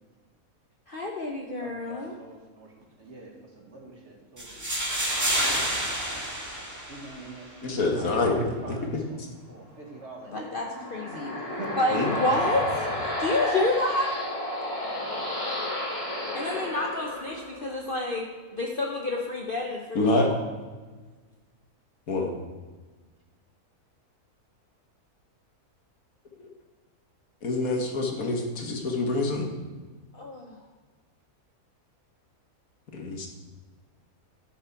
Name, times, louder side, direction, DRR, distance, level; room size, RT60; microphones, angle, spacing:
voice 1, 0.9-2.1 10.3-11.4 11.8-14.2 16.3-18.3 18.5-20.4 30.1-30.6, left 2 dB, 45° left, 0 dB, 0.8 m, -29 dB
voice 2, 1.6-4.5 6.9-9.2 9.5-10.5 11.3-11.9, right 3 dB, 50° right, 0 dB, 1.7 m, -44 dB
sound 1, 4.4-7.4, right 1 dB, 10° right, 1.7 m, -29 dB
voice 3, 7.6-9.0 11.9-12.1 20.0-20.3 22.1-22.3 26.4-26.5 27.4-29.5 32.9-33.3, left 2 dB, 65° left, 1 dB, 1.7 m, -26 dB
sound 2, 10.3-17.8, left 1 dB, 20° left, 2.2 m, -31 dB
10.5 x 6.4 x 4.6 m, 1.3 s
omnidirectional pair, 1.6 m